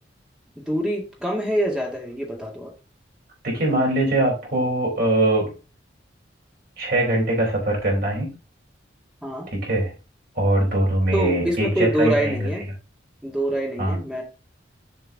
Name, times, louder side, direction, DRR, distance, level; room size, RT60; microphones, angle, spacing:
voice 1, 0.6-2.7 9.2-9.5 11.1-12.7 13.2-14.2, equal, 5° right, -1 dB, 2.0 m, -25 dB
voice 2, 3.4-5.5 6.8-8.3 9.5-9.9 10.4-12.5 13.8-14.0, right 1 dB, 50° right, -1 dB, 4.4 m, -22 dB
7.3 x 5.7 x 4.0 m, 0.32 s
head